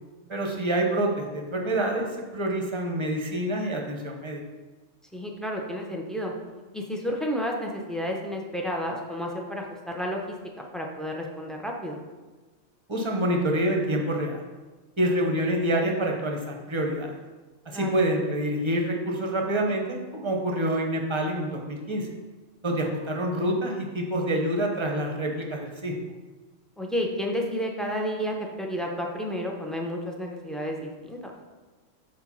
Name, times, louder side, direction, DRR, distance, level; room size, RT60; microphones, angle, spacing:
voice 1, 0.3-4.4 12.9-14.4 15.0-17.2 17.7-22.1 22.6-25.9, right 1 dB, 25° right, 1 dB, 0.8 m, -27 dB
voice 2, 5.1-6.3 6.7-10.4 10.7-12.0 17.7-17.9 26.8-31.3, equal, ahead, 0 dB, 0.4 m, -31 dB
5.0 x 4.5 x 5.5 m, 1.3 s
omnidirectional pair, 1.3 m